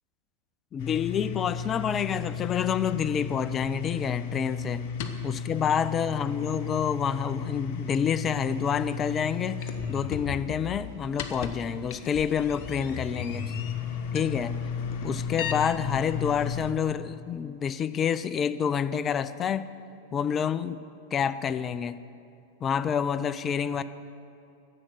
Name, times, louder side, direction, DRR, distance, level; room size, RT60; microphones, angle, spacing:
voice 1, 0.7-4.8 5.2-13.5 14.1-14.6 15.0-19.7 20.1-20.8 21.1-22.0 22.6-23.8, left 7 dB, 25° left, 14 dB, 0.4 m, -28 dB
sound 1, 0.8-16.7, left 6 dB, 45° left, 0.8 m, -34 dB
10.5 x 7.6 x 7.5 m, 2.7 s
figure-of-eight pair, 90°, 0 cm